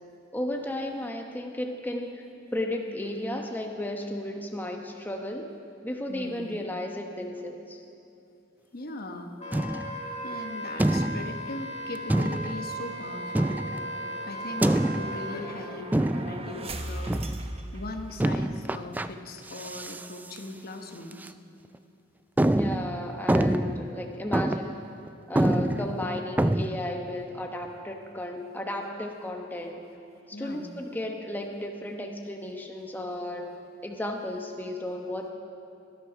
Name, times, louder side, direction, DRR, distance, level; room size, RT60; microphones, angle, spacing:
voice 1, 0.3-2.2 2.5-5.5 5.8-7.8 22.6-24.8 25.3-29.9 30.3-33.5 33.8-35.3, left 1 dB, 10° left, 2 dB, 0.9 m, -34 dB
voice 2, 6.1-6.6 8.7-9.3 10.2-13.6 14.3-17.2 17.7-21.3 25.4-25.9 30.3-30.7, left 2 dB, 50° left, 5 dB, 1.1 m, -40 dB
Wind instrument woodwind instrument, 9.4-15.4, right 1 dB, 35° left, 1.8 m, -36 dB
sound 1, 9.5-10.1 10.8-11.4 12.1-12.7 13.3-13.9 14.6-15.3 15.9-16.5 17.1-17.5 18.2-19.1 19.5-20.1 20.4-20.5 21.1-21.3 21.7-21.8 22.4-23.9 24.3-24.8 25.1-25.2 25.3-26.7, right 1 dB, 10° right, 0.3 m, -26 dB
sound 2, 11.8-18.6, right 1 dB, 30° right, 0.9 m, -41 dB
19.0 x 11.5 x 6.0 m, 2.7 s
head